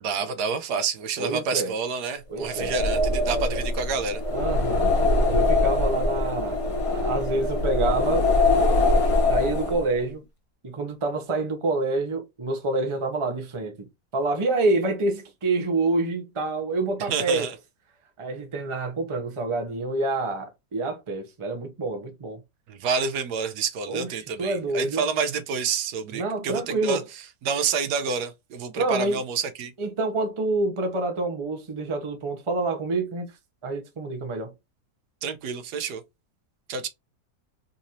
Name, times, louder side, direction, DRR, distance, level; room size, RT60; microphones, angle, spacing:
voice 1, 0.0-4.2 17.1-17.5 22.7-27.0 27.4-29.7 35.2-36.0 36.7-36.9, right 5 dB, 80° right, 1.2 m, -28 dB
voice 2, 1.2-1.7 2.3-2.7 4.3-4.9 5.3-6.6 6.9-8.3 9.3-10.2 10.6-13.9 14.1-17.5 18.2-22.4 23.9-25.0 26.1-27.0 28.8-29.2 29.8-33.3 33.6-34.5, right 2 dB, 25° right, 0.7 m, -27 dB
sound 1, 2.4-10.0, left 2 dB, 50° left, 0.4 m, -23 dB
4.0 x 2.6 x 2.9 m
omnidirectional pair, 1.7 m